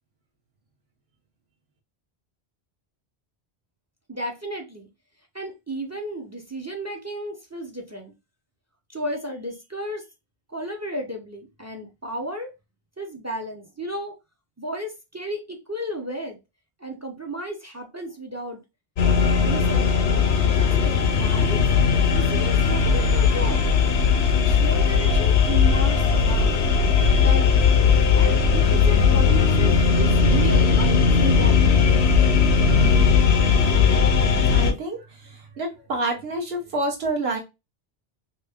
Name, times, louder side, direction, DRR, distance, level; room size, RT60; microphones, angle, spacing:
voice 1, 4.1-4.9 5.3-8.1 8.9-10.1 10.5-12.5 13.0-14.2 14.6-16.4 16.8-18.6 19.5-20.1 20.4-21.7 22.1-23.7 24.3-26.7 27.2-27.6 28.1-30.9 31.2-31.7, right 1 dB, 20° right, 0.4 m, -33 dB
sound 1, 19.0-34.7, left 5 dB, 85° left, 0.9 m, -18 dB
voice 2, 34.4-37.4, right 2 dB, 75° right, 1.1 m, -28 dB
2.9 x 2.7 x 3.4 m
omnidirectional pair, 1.0 m